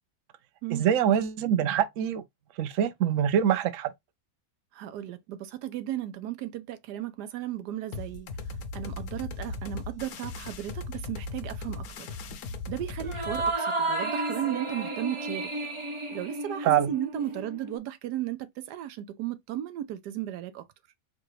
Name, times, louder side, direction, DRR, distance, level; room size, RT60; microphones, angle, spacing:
voice 1, 0.7-2.2 2.6-3.9 16.6-16.9, right 9 dB, 65° right, 0.9 m, -24 dB
voice 2, 4.7-8.3 8.7-12.1 12.7-15.5 16.1-20.7, right 13 dB, 85° right, 1.2 m, -35 dB
sound 1, 7.9-13.5, left 3 dB, 70° left, 1.1 m, -38 dB
sound 2, 13.0-17.8, right 2 dB, 45° right, 0.3 m, -32 dB
4.9 x 2.3 x 3.1 m
omnidirectional pair, 1.7 m